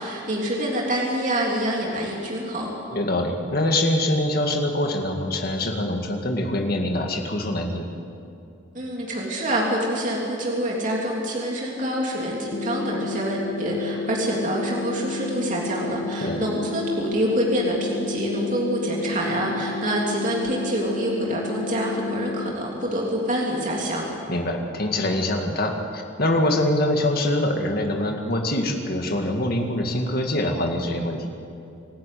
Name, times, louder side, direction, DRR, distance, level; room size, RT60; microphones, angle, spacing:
voice 1, 0.0-2.7 8.7-24.1, equal, 40° right, -2 dB, 3.3 m, -26 dB
voice 2, 2.9-7.9 16.2-16.4 24.3-31.3, left 1 dB, 45° left, 3 dB, 2.2 m, -24 dB
sound 1, 12.5-22.5, left 3 dB, 30° left, 0.6 m, -31 dB
26.0 x 14.0 x 9.4 m, 2.6 s
head